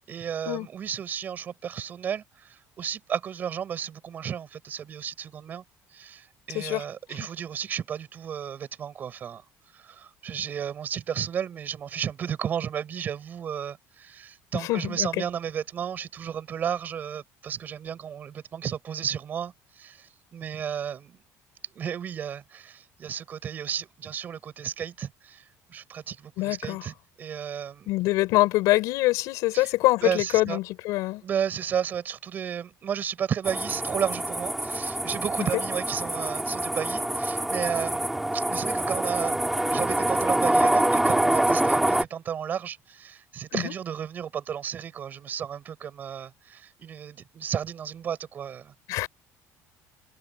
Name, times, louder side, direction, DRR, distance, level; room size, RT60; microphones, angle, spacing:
voice 1, 0.0-5.6 5.9-9.4 9.7-21.2 21.7-25.4 25.7-27.9 29.5-29.7 30.0-30.6 31.2-39.3 39.7-48.7, right 8 dB, 30° right, 7.7 m, -33 dB
voice 2, 6.5-6.9 14.5-15.2 26.4-26.8 27.9-31.2 35.4-35.5 43.5-43.7 48.9-49.1, left 19 dB, 65° left, 7.3 m, -25 dB
sound 1, 33.4-42.0, right 1 dB, 5° right, 3.0 m, -25 dB
cardioid pair, 180°, 6 cm